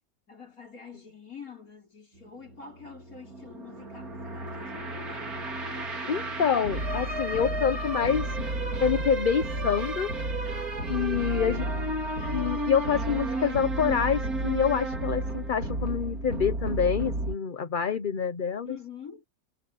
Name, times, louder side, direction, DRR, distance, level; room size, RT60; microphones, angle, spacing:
voice 1, 0.3-5.3 10.8-12.1 18.6-19.2, left 6 dB, 75° left, 5.7 m, -46 dB
sound 1, 2.2-17.4, right 2 dB, 85° right, 4.0 m, -32 dB
voice 2, 6.1-8.3 8.8-10.1 10.9-11.6 12.3-18.8, left 7 dB, 40° left, 0.9 m, -27 dB
omnidirectional pair, 1.5 m